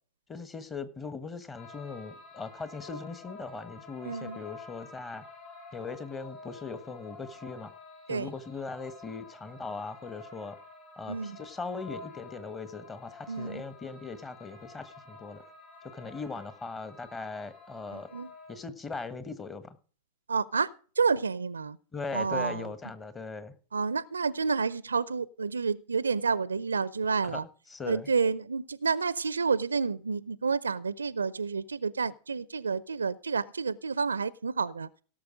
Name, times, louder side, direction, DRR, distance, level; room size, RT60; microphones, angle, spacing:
voice 1, 0.3-5.2 5.7-7.7 8.1-10.6 11.0-15.4 15.9-18.1 18.5-19.8 21.9-23.5 27.2-27.4 27.7-28.1, left 4 dB, 20° left, 1.3 m, -39 dB
sound 1, 1.5-18.5, left 3 dB, 35° left, 5.2 m, -49 dB
voice 2, 4.1-4.4 8.1-8.3 11.1-11.4 13.3-13.6 17.9-18.3 20.3-21.8 22.1-22.6 23.7-27.4 27.9-34.9, right 5 dB, 75° right, 0.5 m, -29 dB
17.5 x 6.8 x 5.0 m
figure-of-eight pair, 90°, 0 cm